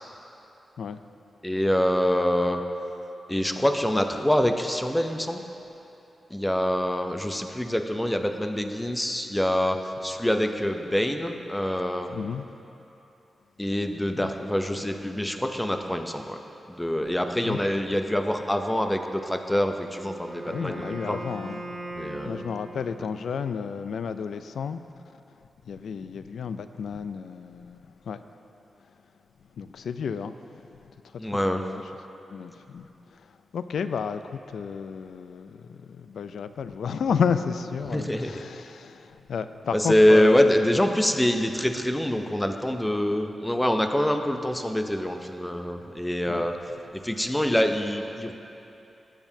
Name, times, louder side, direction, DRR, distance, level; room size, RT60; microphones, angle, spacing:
voice 1, 1.4-2.6 3.3-5.4 6.3-12.1 13.6-16.4 16.7-21.2 22.0-22.4 31.2-31.6 37.9-38.4 39.7-46.6 46.9-48.3, equal, 5° left, 6 dB, 0.5 m, -25 dB
voice 2, 12.1-12.4 14.1-14.3 17.4-17.6 20.4-21.7 22.2-24.8 25.7-28.2 29.6-30.6 31.3-31.8 32.3-33.2 33.5-40.5 46.3-46.5, left 6 dB, 85° left, 11 dB, 0.3 m, -32 dB
Wind instrument woodwind instrument, 19.8-23.1, right 2 dB, 80° right, 1.1 m, -39 dB
19.0 x 7.1 x 2.7 m, 2.9 s
wide cardioid pair, 170°, 0 cm